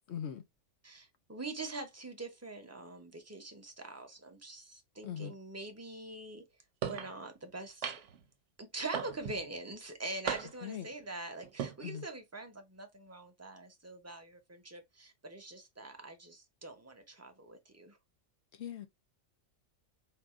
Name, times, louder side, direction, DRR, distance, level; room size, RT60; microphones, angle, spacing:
voice 1, 0.1-0.4 5.0-5.3 10.6-10.9 11.8-12.0 18.5-18.9, left 9 dB, 65° left, 1.0 m, -40 dB
voice 2, 0.8-6.4 6.8-7.9 8.6-18.0, right 2 dB, 15° right, 0.8 m, -44 dB
sound 1, 6.8-7.1 7.8-8.2 8.9-9.4 10.3-10.7 11.4-11.7, right 8 dB, 80° right, 1.0 m, -37 dB
4.7 x 2.5 x 3.6 m
omnidirectional pair, 1.2 m